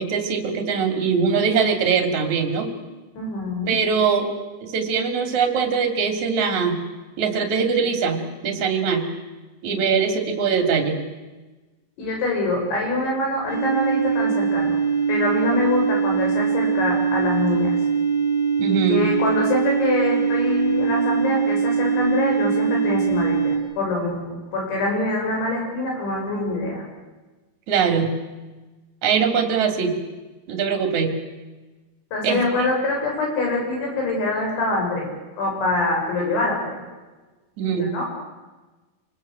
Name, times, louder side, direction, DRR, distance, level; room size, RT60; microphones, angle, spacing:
voice 1, 0.0-2.7 3.7-4.3 4.6-6.8 7.2-9.1 9.6-11.0 18.6-19.1 27.7-28.1 29.0-29.9 30.5-31.1 32.2-32.5 37.6-37.9, right 6 dB, 45° right, 5 dB, 3.7 m, -22 dB
voice 2, 3.2-3.7 12.0-14.8 15.1-17.7 18.7-26.8 32.1-35.1 35.3-36.8 37.7-38.1, left 2 dB, 80° left, 0 dB, 9.4 m, -25 dB
sound 1, 13.5-23.6, right 6 dB, 15° left, 4.8 m, -22 dB
28.5 x 20.0 x 7.9 m, 1.2 s
omnidirectional pair, 5.3 m